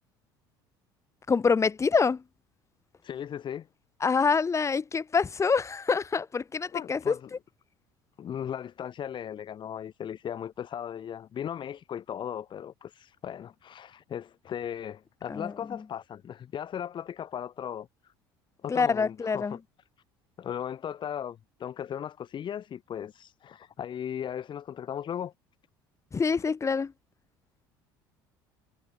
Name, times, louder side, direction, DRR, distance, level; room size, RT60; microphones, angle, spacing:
voice 1, 1.3-2.2 4.0-7.1 15.3-15.5 18.7-19.6 26.1-26.9, left 5 dB, 25° left, 1.9 m, -26 dB
voice 2, 3.0-3.7 6.7-7.3 8.2-17.9 18.6-19.6 20.4-25.3, left 9 dB, 45° left, 4.2 m, -37 dB
hypercardioid pair, 75°, 11 cm